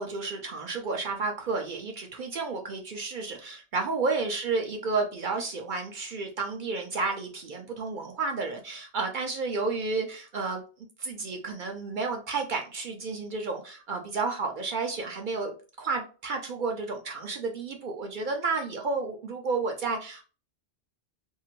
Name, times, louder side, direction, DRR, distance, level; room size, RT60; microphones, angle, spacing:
voice 1, 0.0-20.2, right 4 dB, 55° right, 2 dB, 0.6 m, -31 dB
2.7 x 2.5 x 2.8 m, 0.36 s
omnidirectional pair, 1.2 m